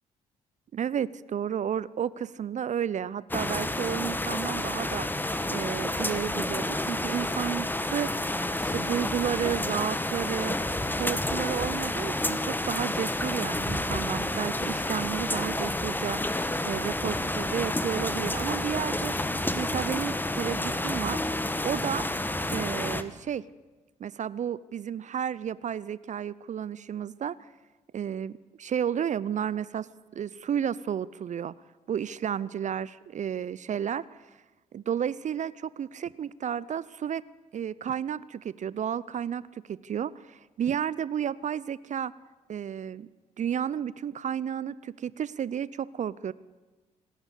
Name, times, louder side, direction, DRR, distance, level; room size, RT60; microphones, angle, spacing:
voice 1, 0.7-5.1 5.5-8.3 8.6-10.6 11.0-16.2 16.6-19.1 19.5-21.2 21.6-22.0 22.5-23.4 24.0-27.4 27.9-29.9 30.1-31.5 31.9-34.0 34.7-37.2 37.5-42.1 42.5-43.1 43.4-46.3, right 9 dB, 40° right, 20 dB, 0.6 m, -32 dB
sound 1, 3.3-23.0, left 1 dB, 10° left, 1.6 m, -30 dB
27.0 x 13.5 x 8.3 m, 1.2 s
figure-of-eight pair, 45°, 18 cm